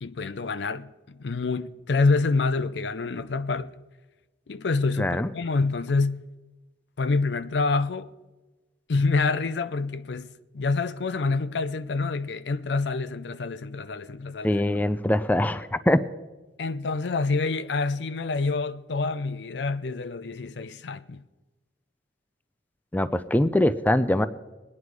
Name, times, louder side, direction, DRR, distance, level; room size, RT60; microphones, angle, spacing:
voice 1, 0.0-3.7 4.5-6.3 7.0-8.1 8.9-14.6 16.6-21.2, left 3 dB, 70° left, 0.5 m, -27 dB
voice 2, 5.0-5.3 14.4-16.0 22.9-24.3, left 1 dB, 10° left, 0.4 m, -23 dB
20.0 x 9.6 x 4.7 m
head